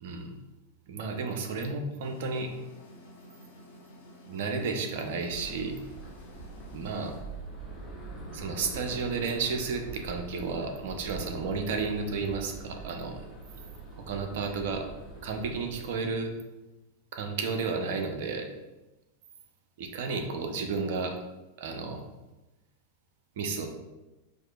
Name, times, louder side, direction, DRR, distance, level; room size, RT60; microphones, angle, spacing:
voice 1, 0.0-0.3 0.9-2.5 4.3-5.8 6.7-7.1 8.3-13.2 14.0-14.9 15.2-16.3 17.1-18.5 19.8-21.2 21.6-22.0 23.4-23.7, right 4 dB, 55° right, 4 dB, 0.5 m, -32 dB
sound 1, 2.0-7.2, left 1 dB, 60° left, 0.9 m, -51 dB
sound 2, 5.3-15.8, right 3 dB, 10° left, 0.8 m, -44 dB
4.3 x 2.4 x 2.3 m, 1.1 s
figure-of-eight pair, 90°, 0 cm